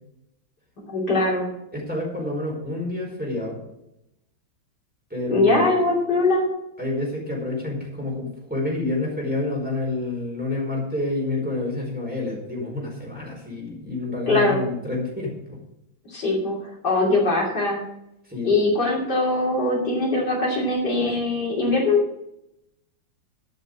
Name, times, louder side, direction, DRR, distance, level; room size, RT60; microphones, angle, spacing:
voice 1, 0.9-1.5 5.3-6.5 14.3-14.6 16.1-17.8 18.4-22.0, left 2 dB, 60° left, -3 dB, 3.4 m, -21 dB
voice 2, 1.7-3.6 5.1-5.7 6.8-15.6 18.2-18.5, left 2 dB, 5° right, -2 dB, 4.5 m, -28 dB
11.5 x 8.1 x 6.6 m, 0.84 s
omnidirectional pair, 2.1 m